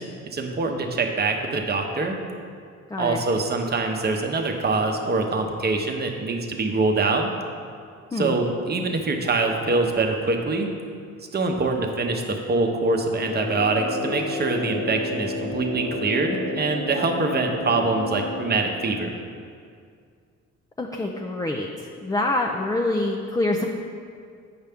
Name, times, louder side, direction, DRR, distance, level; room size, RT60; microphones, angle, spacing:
voice 1, 0.0-2.2 3.0-7.3 8.1-10.7 11.3-19.1, right 3 dB, 35° right, 3 dB, 0.9 m, -24 dB
voice 2, 2.9-3.2 8.1-8.4 20.8-23.6, left 2 dB, 10° left, 0 dB, 0.4 m, -26 dB
Brass instrument, 13.2-18.8, left 2 dB, 60° left, 0.8 m, -31 dB
8.9 x 5.5 x 3.5 m, 2.2 s
cardioid pair, 90°, 30 cm